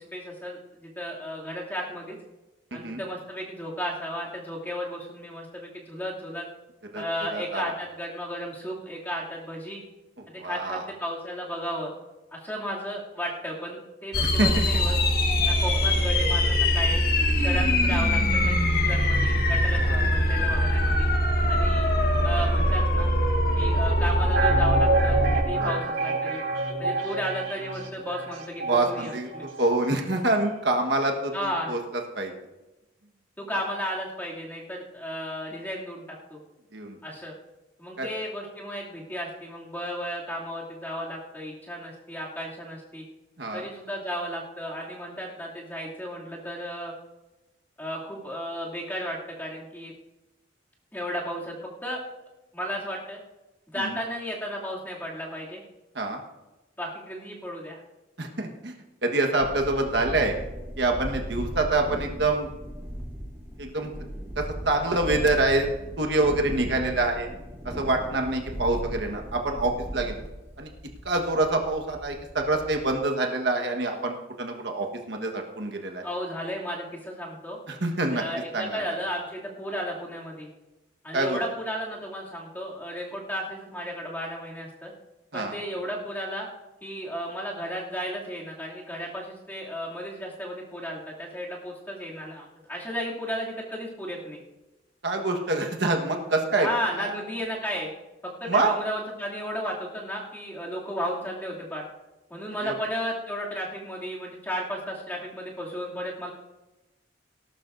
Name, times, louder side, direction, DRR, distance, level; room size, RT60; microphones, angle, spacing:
voice 1, 0.0-2.2 2.7-6.5 6.9-9.8 10.3-11.9 12.3-14.9 15.4-17.0 17.3-18.6 18.8-21.1 21.5-21.9 22.2-23.1 23.5-26.4 26.8-29.4 31.3-31.8 33.4-36.0 36.3-36.4 37.0-37.3 37.8-43.0 43.5-46.9 47.8-49.9 50.9-51.6 51.8-52.0 52.5-53.2 53.7-55.6 56.8-57.8 76.0-77.6 78.1-80.5 81.0-84.9 85.3-86.5 86.8-94.4 96.6-97.9 98.2-101.8 102.3-106.3, equal, 10° left, -4 dB, 2.6 m, -34 dB
voice 2, 7.3-7.6 10.4-10.8 14.2-14.8 17.9-18.0 19.8-20.1 23.5-23.7 25.6-25.7 28.6-29.3 29.6-31.8 32.1-32.3 36.7-37.0 38.0-38.1 43.4-43.6 53.8-53.9 55.9-56.2 58.2-58.7 59.0-60.3 60.8-62.5 63.6-63.9 64.4-65.7 66.0-67.3 67.6-70.2 70.6-70.7 71.0-76.0 77.7-78.2 78.5-78.8 81.1-81.4 85.3-85.5 95.0-96.7 97.0-97.1 98.5-98.7 102.6-102.7, right 2 dB, 65° right, 3 dB, 1.4 m, -26 dB
sound 1, 14.1-25.4, equal, 50° left, 1.4 m, -22 dB
sound 2, 24.3-29.9 30.2-30.3, right 2 dB, 85° right, 3.7 m, -28 dB
sound 3, 59.4-73.0, equal, 10° right, 1.8 m, -38 dB
18.5 x 12.0 x 2.6 m, 1.0 s
head